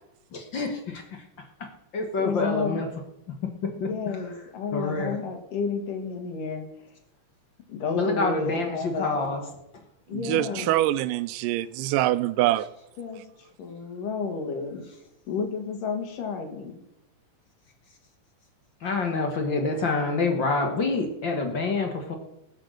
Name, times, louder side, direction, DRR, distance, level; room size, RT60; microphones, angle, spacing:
voice 1, 0.3-1.2 1.9-2.9 3.6-3.9 4.7-5.2 7.9-9.4 10.2-10.7 18.8-22.1, left 3 dB, 50° left, 1.4 m, -27 dB
voice 2, 2.2-2.8 3.8-6.6 7.7-9.3 10.1-10.9 13.0-13.2 13.6-14.8 15.3-16.8, left 5 dB, 80° left, 3.4 m, -31 dB
voice 3, 10.3-12.7, right 15 dB, 85° right, 2.1 m, -24 dB
19.5 x 6.6 x 6.3 m
omnidirectional pair, 3.8 m